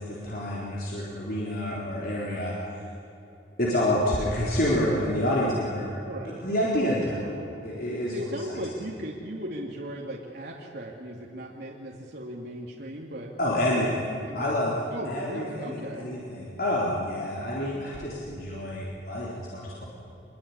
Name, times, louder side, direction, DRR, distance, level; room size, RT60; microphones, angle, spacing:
voice 1, 0.0-2.6 3.6-5.9 6.2-7.3 7.6-8.2 13.4-14.1 14.3-14.8 15.1-19.8, left 1 dB, 55° left, -5 dB, 4.0 m, -28 dB
voice 2, 6.1-6.4 8.1-13.3 13.7-14.0 14.2-14.5 14.9-16.1, equal, 65° right, -2 dB, 2.4 m, -37 dB
24.0 x 22.0 x 9.9 m, 2.9 s
head